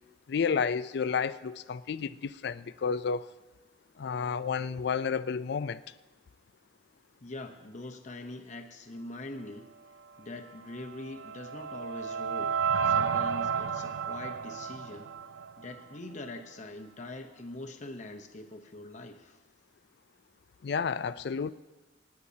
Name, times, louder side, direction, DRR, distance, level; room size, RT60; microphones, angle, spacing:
voice 1, 0.3-3.3 4.0-5.8 20.6-21.5, left 6 dB, 60° left, 0.4 m, -31 dB
voice 2, 7.2-9.7 10.2-12.6 12.8-15.1 15.6-19.4, left 2 dB, 40° left, 0.8 m, -43 dB
sound 1, 10.8-16.0, right 6 dB, 85° right, 0.5 m, -31 dB
26.5 x 9.5 x 2.8 m
head